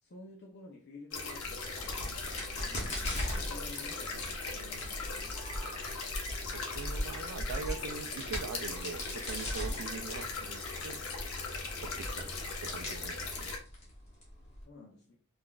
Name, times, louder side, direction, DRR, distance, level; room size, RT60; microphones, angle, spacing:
voice 1, 0.0-5.6 9.7-9.8 13.1-13.2 14.4-15.2, left 2 dB, 45° left, 0.5 m, -52 dB
sound 1, 1.1-13.6, left 3 dB, 80° left, 0.7 m, -39 dB
Crack, 1.4-14.6, left 1 dB, 30° left, 1.0 m, -40 dB
sound 2, 5.1-6.2 7.6-7.8 9.5-9.9, right 3 dB, 10° right, 1.5 m, -52 dB
voice 2, 6.5-11.0 11.8-12.3 12.6-13.5, right 5 dB, 75° right, 0.4 m, -42 dB
3.7 x 2.5 x 2.3 m
head